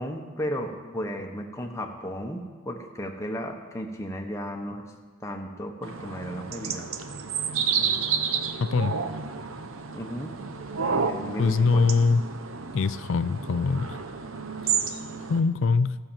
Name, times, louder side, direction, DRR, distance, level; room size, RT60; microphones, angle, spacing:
voice 1, 0.0-4.8 5.2-6.9 9.9-10.3 10.9-11.8, equal, 15° left, 2 dB, 1.0 m, -34 dB
sound 1, 5.8-15.4, right 6 dB, 75° right, 0.8 m, -30 dB
voice 2, 8.6-8.9 11.4-12.2 12.7-14.0 15.3-16.0, left 4 dB, 70° left, 15 dB, 0.4 m, -23 dB
14.5 x 6.6 x 7.4 m, 1.5 s
head